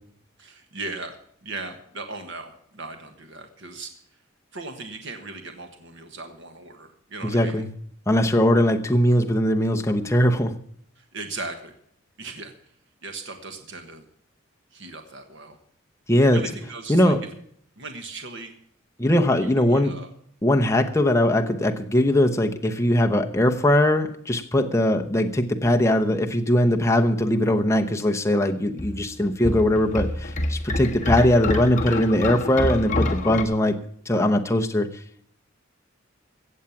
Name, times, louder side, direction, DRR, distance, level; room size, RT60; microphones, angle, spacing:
voice 1, 0.4-1.2 1.4-3.9 4.5-7.6 11.0-11.7 12.2-12.5 13.0-14.0 14.7-15.6 16.3-17.1 17.8-18.5 19.4-20.1, right 3 dB, 60° right, 6 dB, 1.4 m, -38 dB
voice 2, 7.2-7.7 8.1-10.5 16.1-16.4 16.9-17.2 19.0-19.9 20.4-33.8 34.1-34.9, left 1 dB, 15° left, 4 dB, 0.9 m, -20 dB
sound 1, 28.8-33.4, left 1 dB, 40° left, 1.5 m, -27 dB
16.5 x 7.4 x 7.2 m, 0.65 s
head